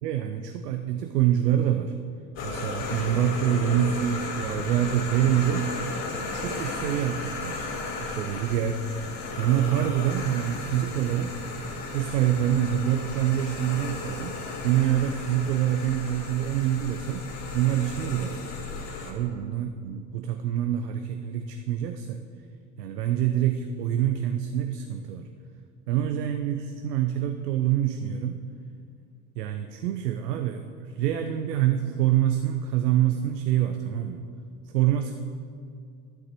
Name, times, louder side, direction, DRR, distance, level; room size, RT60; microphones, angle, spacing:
voice 1, 0.0-1.9 2.4-5.7 6.3-7.7 8.0-8.8 9.4-11.3 11.9-17.2 17.5-18.4 19.0-22.2 22.8-25.3 25.9-28.4 29.4-30.7 31.0-34.3 34.7-35.2, right 11 dB, 85° right, 6 dB, 0.8 m, -26 dB
sound 1, 2.4-19.1, left 3 dB, 60° left, 2.4 m, -35 dB
11.5 x 7.2 x 7.6 m, 2.3 s
hypercardioid pair, 65°, 47 cm